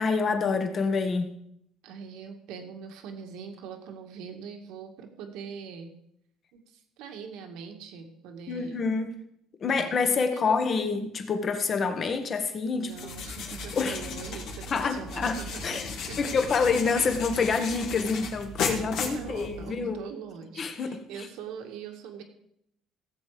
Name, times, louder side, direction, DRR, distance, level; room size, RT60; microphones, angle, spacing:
voice 1, 0.0-1.4 8.5-9.2 9.6-12.9 13.8-14.2 14.7-15.4 15.6-15.9 16.2-20.0 20.6-21.0, left 4 dB, 35° left, 8 dB, 1.6 m, -27 dB
voice 2, 1.8-5.9 6.5-8.8 9.7-10.0 10.3-10.6 12.7-16.3 18.6-22.2, right 6 dB, 80° right, 4 dB, 2.1 m, -42 dB
sound 1, 12.9-19.9, left 4 dB, 65° left, 2.4 m, -35 dB
17.5 x 7.7 x 5.2 m, 0.74 s
cardioid pair, 125°, 0 cm